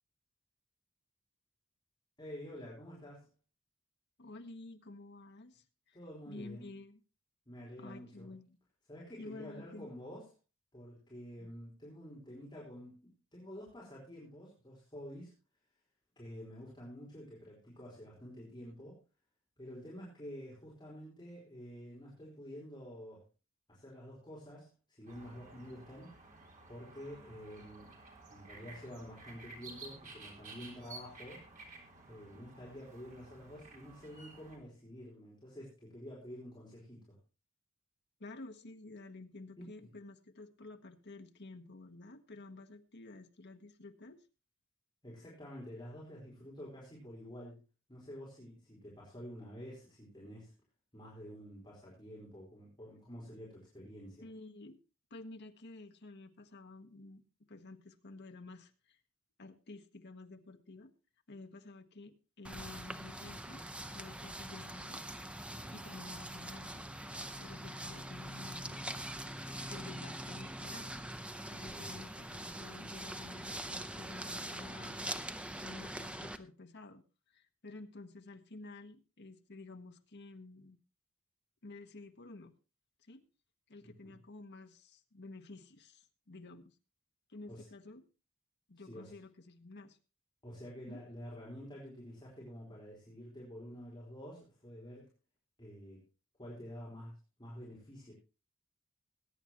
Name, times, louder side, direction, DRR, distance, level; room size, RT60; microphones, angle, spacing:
voice 1, 2.2-3.3 5.9-6.7 7.5-8.3 8.9-10.3 10.7-15.3 16.2-19.0 19.6-23.2 23.7-26.2 26.7-27.9 28.3-31.5 32.1-37.2 39.8-39.9 45.0-47.6 47.9-50.5 50.9-54.2 65.5-65.8 71.6-72.0 83.8-84.1 87.5-87.7 88.8-89.1 90.4-95.1 95.6-96.0 96.4-98.1, equal, 20° left, -5 dB, 4.4 m, -49 dB
voice 2, 4.2-6.0 6.2-7.0 7.8-8.6 9.2-9.9 11.4-11.5 38.2-44.2 54.2-54.8 55.1-57.2 57.5-59.0 59.4-60.9 61.3-63.6 63.9-65.0 65.7-66.9 67.4-68.9 69.7-71.0 71.5-77.0 77.3-80.8 81.6-82.6 83.1-83.2 83.7-86.7 87.3-88.0 88.7-90.0 90.9-91.0, left 2 dB, 55° left, 8 dB, 1.2 m, -51 dB
sound 1, 25.1-34.6, right 3 dB, 40° right, 3.8 m, -53 dB
sound 2, 62.4-76.4, right 1 dB, 5° right, 0.7 m, -43 dB
21.0 x 9.9 x 3.0 m, 0.31 s
head